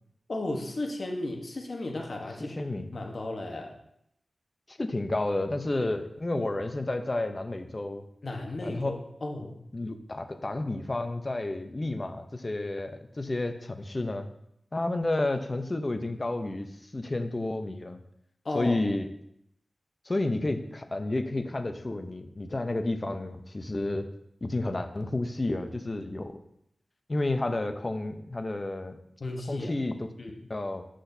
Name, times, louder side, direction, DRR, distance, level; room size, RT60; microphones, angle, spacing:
voice 1, 0.3-2.6 2.9-3.7 8.2-9.6 18.4-18.9 29.2-29.7 30.2-30.4, left 2 dB, 50° left, 1 dB, 1.1 m, -34 dB
voice 2, 2.4-2.9 4.7-8.0 8.6-8.9 9.7-14.3 14.7-18.0 18.5-19.1 20.1-24.1 24.4-26.4 27.1-29.0 29.5-30.1 30.5-30.8, left 2 dB, 30° left, 7 dB, 0.6 m, -31 dB
7.8 x 6.2 x 2.7 m, 0.76 s
wide cardioid pair, 90°, 0 cm